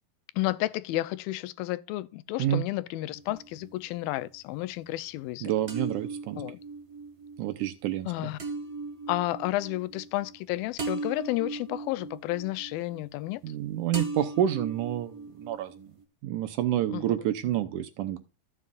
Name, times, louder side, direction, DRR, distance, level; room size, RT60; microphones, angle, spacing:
voice 1, 0.4-5.5 6.4-6.6 8.1-8.4 9.1-13.4 16.9-17.0, left 17 dB, 90° left, 2.4 m, -31 dB
sound 1, 3.2-4.0 5.7-13.6 13.9-16.0, right 3 dB, 40° right, 0.9 m, -38 dB
voice 2, 5.4-6.4 7.4-8.1 13.4-15.9 16.2-18.2, right 12 dB, 75° right, 2.0 m, -28 dB
13.5 x 7.5 x 2.4 m
omnidirectional pair, 4.1 m